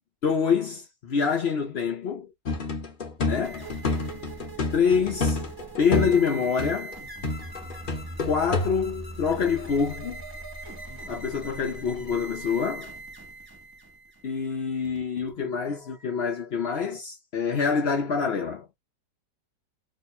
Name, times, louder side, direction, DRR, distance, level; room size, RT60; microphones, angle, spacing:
voice 1, 0.2-2.3 3.2-3.7 4.7-5.4 5.8-7.0 8.3-10.2 11.1-12.9 14.2-18.7, left 6 dB, 75° left, 0.5 m, -26 dB
sound 1, 2.5-6.3 6.6-7.0 7.2-8.7, left 3 dB, 45° left, 0.7 m, -28 dB
sound 2, 3.4-15.3, right 2 dB, 30° right, 0.4 m, -41 dB
3.2 x 2.1 x 4.2 m
omnidirectional pair, 1.9 m